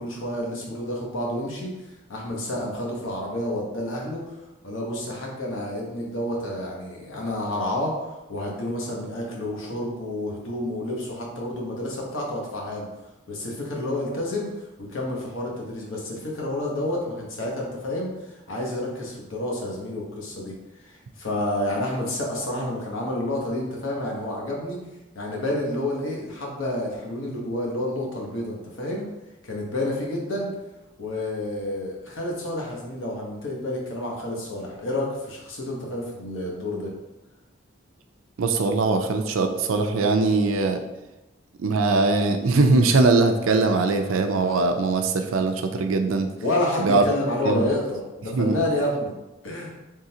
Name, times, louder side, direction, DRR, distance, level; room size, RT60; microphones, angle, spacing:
voice 1, 0.0-4.3 4.6-12.9 13.3-14.5 14.8-24.8 25.1-29.1 29.4-30.5 31.0-36.9 46.4-49.1 49.4-49.7, left 1 dB, 80° left, -2 dB, 1.0 m, -29 dB
voice 2, 38.4-40.8 41.6-46.3 46.8-47.0 47.4-47.7 48.3-48.6, right 3 dB, 90° right, 6 dB, 0.4 m, -21 dB
3.7 x 3.3 x 2.8 m, 1.0 s
head